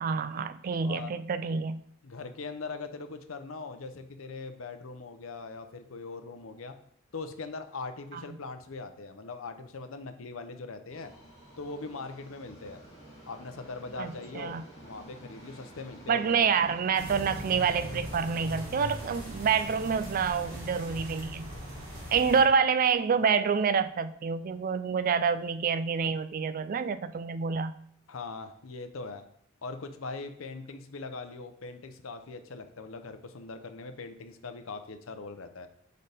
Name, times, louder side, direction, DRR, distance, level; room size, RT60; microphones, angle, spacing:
voice 1, 0.0-1.8 8.1-8.2 14.0-14.6 16.1-21.5 22.1-27.7, right 6 dB, 45° right, 12 dB, 0.4 m, -27 dB
voice 2, 0.8-1.1 2.0-6.8 7.1-11.1 11.6-12.8 13.3-16.5 22.3-22.5 28.1-29.2 29.6-35.7, left 3 dB, 80° left, 8 dB, 0.7 m, -41 dB
Subway metro underground, 10.9-25.0 25.3-25.4 26.2-26.3 26.6-26.7 27.3-27.4, right 1 dB, 35° left, 2.4 m, -53 dB
sound 1, 16.9-22.4, equal, 70° right, 2.5 m, -40 dB
6.6 x 5.2 x 3.4 m, 0.65 s
head